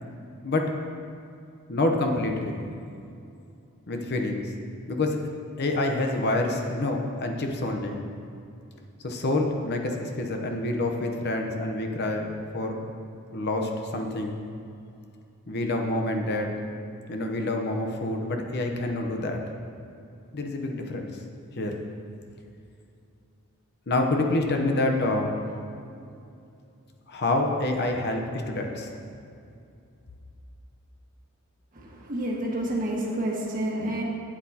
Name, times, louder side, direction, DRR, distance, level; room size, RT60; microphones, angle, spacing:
voice 1, 1.7-2.6 3.9-4.5 4.9-5.2 5.6-8.0 9.0-12.8 13.3-14.4 15.5-16.6 17.1-19.4 20.3-21.2 21.6-21.8 23.9-25.3 27.1-28.9, left 2 dB, 50° left, 3 dB, 0.8 m, -27 dB
voice 2, 31.7-34.0, right 1 dB, 40° right, -3 dB, 1.5 m, -29 dB
11.5 x 8.6 x 2.9 m, 2.6 s
head